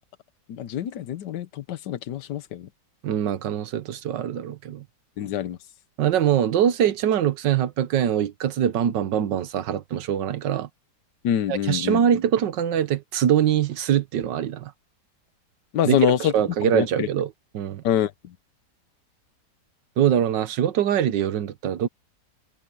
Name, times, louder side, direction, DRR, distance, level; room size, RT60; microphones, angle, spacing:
voice 1, 0.5-2.7 5.2-5.6 11.2-12.0 15.7-16.3 16.6-17.1 17.8-18.3, left 10 dB, 80° left, 1.5 m, -25 dB
voice 2, 3.0-4.8 6.0-10.7 11.5-14.7 15.8-17.3 17.5-17.8 20.0-21.9, right 9 dB, 85° right, 1.6 m, -23 dB
omnidirectional pair, 1.9 m